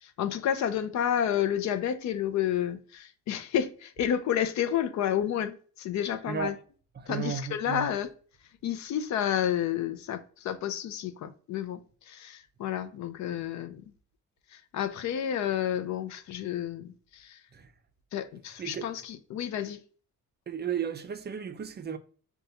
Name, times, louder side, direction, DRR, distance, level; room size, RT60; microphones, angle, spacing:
voice 1, 0.0-6.6 7.1-8.1 8.6-13.8 14.5-17.4 18.1-19.8, left 9 dB, 70° left, 0.5 m, -30 dB
voice 2, 6.3-6.6 7.0-7.9 17.5-17.7 18.6-18.9 20.5-22.0, right 7 dB, 35° right, 0.5 m, -34 dB
6.6 x 2.3 x 2.7 m
cardioid pair, 90°, 30 cm